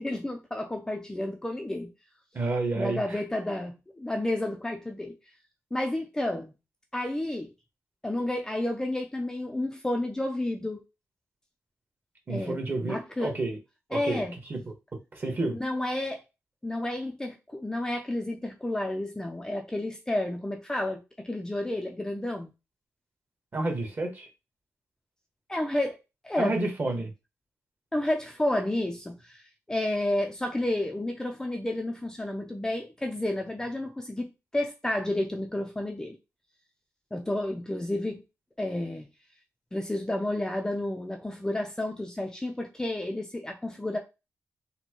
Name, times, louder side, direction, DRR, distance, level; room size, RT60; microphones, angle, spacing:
voice 1, 0.0-1.9 2.7-5.2 5.7-6.5 6.9-7.5 8.0-10.8 12.3-13.3 13.9-14.4 15.5-16.2 16.6-22.5 25.5-26.0 26.2-26.5 27.9-29.4 29.7-36.2 37.1-38.2 38.6-39.1 39.7-44.0, left 1 dB, 10° left, 0.4 m, -31 dB
voice 2, 2.3-3.2 12.3-13.6 13.9-14.6 15.1-15.6 23.5-24.3 26.4-27.1, right 2 dB, 35° right, 1.2 m, -30 dB
4.2 x 2.2 x 2.9 m
cardioid pair, 105°, 6 cm